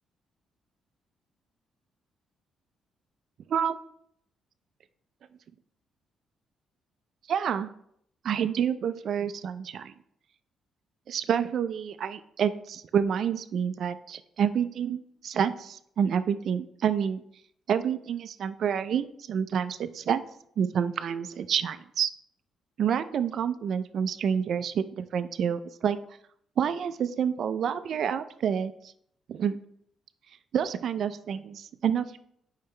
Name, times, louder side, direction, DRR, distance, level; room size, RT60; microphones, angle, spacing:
voice 1, 7.3-7.7 8.2-9.9 11.1-17.2 17.7-20.2 20.6-22.1 22.8-26.0 26.6-28.7 29.3-29.6 30.5-32.2, right 8 dB, 65° right, 11 dB, 0.4 m, -28 dB
8.8 x 5.6 x 3.2 m, 0.71 s
cardioid pair, 90°, 0 cm